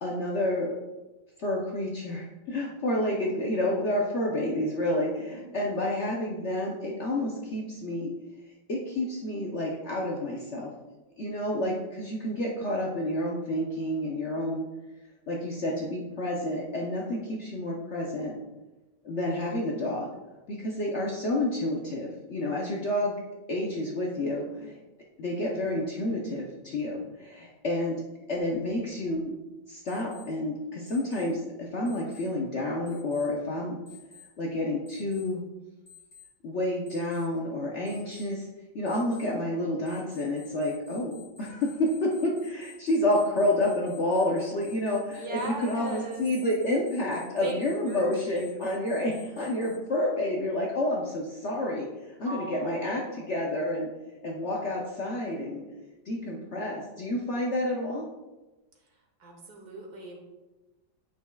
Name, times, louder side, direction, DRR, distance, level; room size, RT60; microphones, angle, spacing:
voice 1, 0.0-0.7 1.4-8.1 8.7-10.7 11.2-14.6 15.3-18.3 19.0-20.1 20.5-23.1 23.5-24.8 25.2-28.0 28.3-29.3 29.7-33.8 34.4-35.4 36.4-38.5 38.7-51.9 52.2-53.9 54.2-55.6 56.1-58.1, left 1 dB, 55° left, -2 dB, 0.8 m, -29 dB
voice 2, 5.2-6.0 45.1-46.3 47.4-47.6 47.8-48.6 52.2-53.2 59.2-60.2, right 2 dB, 65° right, 1 dB, 1.6 m, -38 dB
Alarm, 29.9-30.2 30.9-31.2 31.9-32.2 32.9-33.2 33.9-34.2 34.9-35.2 35.9-36.2 36.9-37.2 37.9-38.2 38.9-39.2 39.9-49.7, left 6 dB, 40° left, 2.5 m, -51 dB
8.4 x 6.0 x 2.3 m, 1.1 s
omnidirectional pair, 1.9 m